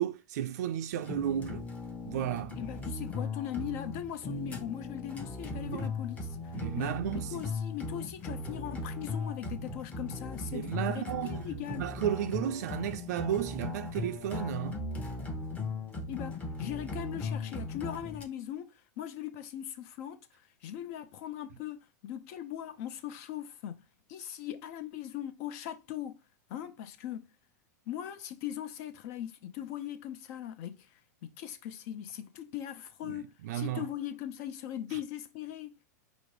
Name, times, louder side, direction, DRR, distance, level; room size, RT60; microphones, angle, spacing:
voice 1, 0.0-1.7 2.1-2.6 5.7-5.9 6.5-7.4 10.5-11.4 11.7-14.8 33.0-33.9 34.9-35.0, right 11 dB, 65° right, 0.4 m, -33 dB
sound 1, 1.0-18.2, left 3 dB, 15° left, 0.9 m, -38 dB
voice 2, 2.6-6.2 6.8-11.9 16.1-18.7 19.0-20.3 20.6-23.8 24.1-26.2 26.5-27.3 27.9-30.8 31.2-35.7, left 11 dB, 55° left, 0.7 m, -40 dB
5.1 x 2.0 x 4.7 m
hypercardioid pair, 110°, 9 cm